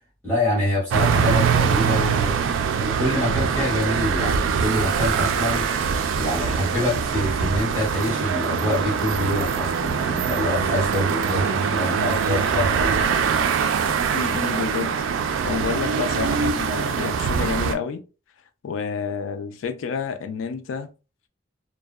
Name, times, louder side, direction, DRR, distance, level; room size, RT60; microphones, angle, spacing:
voice 1, 0.2-2.3 2.8-5.7 6.1-13.5, left 1 dB, 10° left, 1.4 m, -26 dB
sound 1, 0.9-17.7, right 6 dB, 85° right, 0.3 m, -23 dB
voice 2, 14.1-15.0 15.4-18.0 18.6-20.9, left 6 dB, 85° left, 0.3 m, -29 dB
2.7 x 2.0 x 2.3 m
head